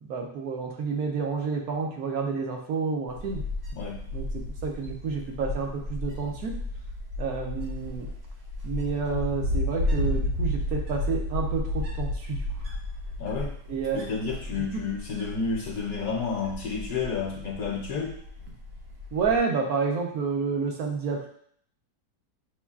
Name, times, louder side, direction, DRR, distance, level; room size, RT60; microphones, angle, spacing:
voice 1, 0.0-3.4 4.1-6.5 7.2-8.1 8.6-12.4 13.7-14.4 14.7-14.8 19.1-21.3, right 5 dB, 65° right, 1 dB, 1.1 m, -30 dB
Wind, 3.1-19.4, left 1 dB, 80° right, 1.9 m, -33 dB
voice 2, 3.7-4.0 13.2-13.5 13.9-18.1, left 5 dB, 65° left, -1 dB, 1.0 m, -30 dB
6.8 x 2.3 x 2.3 m, 0.62 s
omnidirectional pair, 1.8 m